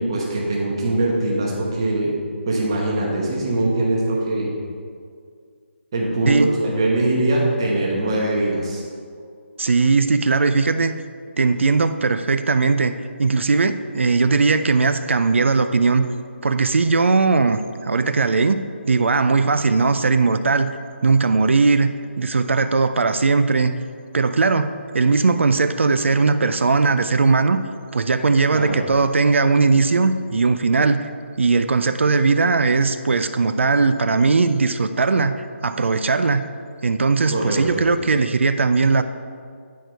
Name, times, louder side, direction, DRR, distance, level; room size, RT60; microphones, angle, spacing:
voice 1, 0.0-2.1 2.5-4.5 5.9-8.8 28.5-28.8 37.3-37.9, right 2 dB, 20° right, -3 dB, 1.0 m, -22 dB
voice 2, 9.6-10.9 11.4-12.9 13.2-16.1 16.4-20.8 21.0-23.7 24.1-27.6 27.9-31.1 31.4-36.5 36.8-39.0, right 4 dB, 75° right, 10 dB, 0.4 m, -19 dB
9.1 x 4.6 x 4.6 m, 2.2 s
hypercardioid pair, 180°, 7 cm